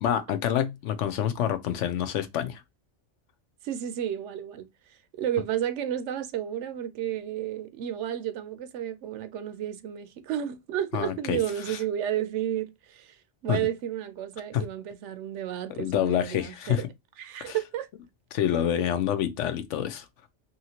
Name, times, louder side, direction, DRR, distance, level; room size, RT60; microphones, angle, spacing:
voice 1, 0.0-2.6 10.9-11.4 11.7-11.8 13.5-13.6 14.5-14.6 15.8-16.9 17.4-17.6 18.3-20.1, left 10 dB, 80° left, 0.9 m, -27 dB
voice 2, 3.6-13.2 13.4-16.8 17.2-17.9, right 10 dB, 80° right, 0.9 m, -32 dB
2.8 x 2.8 x 2.8 m
omnidirectional pair, 1.2 m